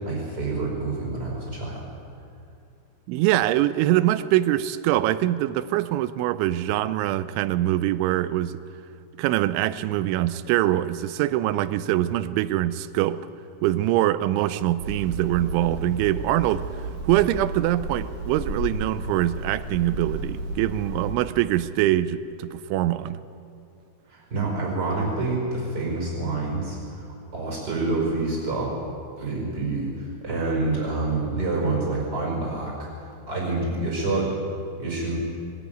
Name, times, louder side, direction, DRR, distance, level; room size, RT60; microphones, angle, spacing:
voice 1, 0.0-1.9 24.1-28.7 29.2-34.4 34.8-35.2, right 3 dB, 20° right, -1 dB, 5.1 m, -27 dB
voice 2, 3.1-8.6 9.2-13.2 13.6-16.6 17.0-23.2, right 14 dB, 85° right, 14 dB, 2.8 m, -23 dB
Hammer, 14.8-21.1, right 1 dB, 40° right, 3.7 m, -33 dB
21.5 x 13.0 x 9.3 m, 2.5 s
omnidirectional pair, 5.8 m